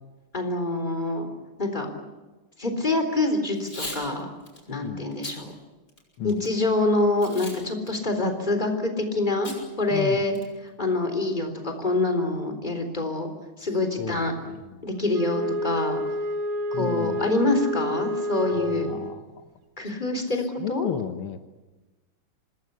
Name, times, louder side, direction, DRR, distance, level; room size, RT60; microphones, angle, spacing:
voice 1, 0.3-1.3 1.6-1.9 2.6-4.3 4.7-5.5 6.2-9.5 9.8-10.3 10.8-13.3 13.6-14.4 14.8-16.0 16.7-18.9 19.8-20.9, left 2 dB, 20° left, 5 dB, 3.9 m, -26 dB
Packing tape duct tape / Tearing, 3.5-4.0 4.5-4.6 5.1-5.4 5.9-6.5 7.2-7.6 7.9-8.0 9.4-9.6 10.0-10.1 10.3-10.7, left 2 dB, 45° left, 7.6 m, -37 dB
voice 2, 4.7-5.1 6.2-6.4 9.9-10.3 14.0-14.5 16.7-17.2 18.5-19.2 20.6-21.4, left 8 dB, 75° left, 7 dB, 2.0 m, -33 dB
Wind instrument woodwind instrument, 15.1-19.3, equal, 85° right, 2.6 m, -29 dB
27.0 x 20.0 x 8.3 m, 1.2 s
omnidirectional pair, 2.3 m